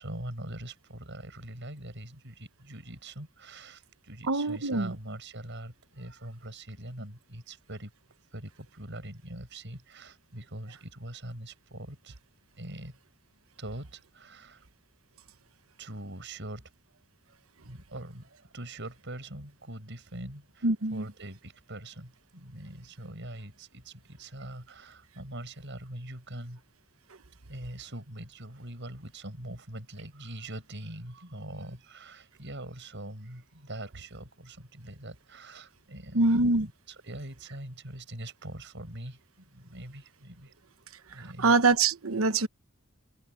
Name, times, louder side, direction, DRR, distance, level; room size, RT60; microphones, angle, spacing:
voice 1, 0.0-7.9 8.3-12.2 12.5-13.0 13.6-14.7 15.8-16.7 17.6-26.6 27.5-40.5 41.1-41.5, right 1 dB, 60° right, 6.6 m, -43 dB
voice 2, 4.3-4.9 20.6-21.0 36.1-36.7 41.4-42.5, right 3 dB, 90° right, 1.1 m, -24 dB
head